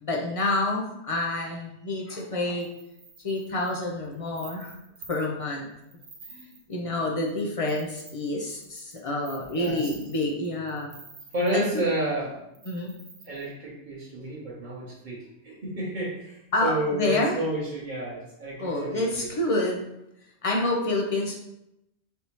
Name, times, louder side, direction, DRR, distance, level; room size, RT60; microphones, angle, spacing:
voice 1, 0.0-2.7 3.2-4.7 5.1-5.7 6.3-10.9 11.5-11.8 12.7-12.9 16.5-17.4 18.6-19.8 20.4-21.3, left 2 dB, 50° left, -1 dB, 0.4 m, -28 dB
sound 1, 2.6-5.4 5.8-6.8 7.2-7.3 7.6-11.9 12.5-13.5, right 4 dB, 70° right, 1.0 m, -49 dB
voice 2, 9.5-9.9 11.3-12.4 13.2-19.3, right 1 dB, 45° right, -6 dB, 0.9 m, -30 dB
3.4 x 2.7 x 2.9 m, 0.83 s
omnidirectional pair, 1.2 m